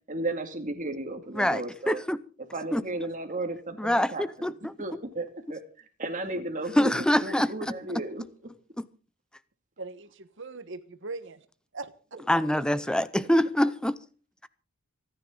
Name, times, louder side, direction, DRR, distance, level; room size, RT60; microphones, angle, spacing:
voice 1, 0.1-2.0 2.4-4.5 4.8-8.2 12.1-12.2 13.0-13.1, right 2 dB, 40° right, 2.4 m, -34 dB
voice 2, 1.4-2.2 2.7-2.8 3.8-4.7 6.8-7.5 8.8-8.9 12.3-14.0, equal, 5° left, 0.6 m, -25 dB
voice 3, 9.8-11.5 11.7-11.9, right 3 dB, 60° right, 1.3 m, -40 dB
26.0 x 10.0 x 3.9 m
head